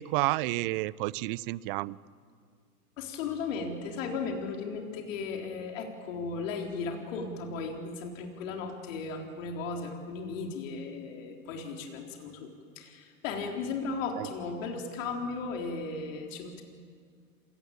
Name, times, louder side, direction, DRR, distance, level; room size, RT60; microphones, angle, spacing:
voice 1, 0.0-2.0 14.2-14.3, right 19 dB, 40° right, 22 dB, 0.5 m, -30 dB
voice 2, 3.0-12.5 12.8-16.6, left 4 dB, 60° left, 2 dB, 4.0 m, -36 dB
27.5 x 18.0 x 8.6 m, 2.1 s
hypercardioid pair, 120°, 44 cm